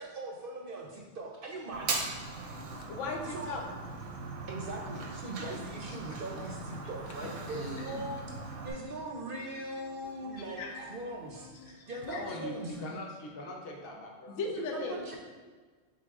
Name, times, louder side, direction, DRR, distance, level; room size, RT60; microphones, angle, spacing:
voice 1, 0.0-2.0 3.3-3.6 4.5-12.8 14.7-15.2, right 2 dB, 60° right, 0 dB, 0.6 m, -40 dB
Fire, 1.7-8.7, right 4 dB, 90° right, 1.0 m, -39 dB
voice 2, 2.3-3.6 5.9-6.4 6.7-6.8 7.2-7.3 10.4-10.8 11.7-12.2 14.3-15.2, left 3 dB, 90° left, 3 dB, 0.9 m, -39 dB
sound 1, 2.5-12.9, left 4 dB, 30° left, 0.7 m, -55 dB
voice 3, 7.5-8.1 12.1-14.4, left 1 dB, 60° left, 0 dB, 0.9 m, -41 dB
3.7 x 3.4 x 3.5 m, 1.4 s
omnidirectional pair, 1.2 m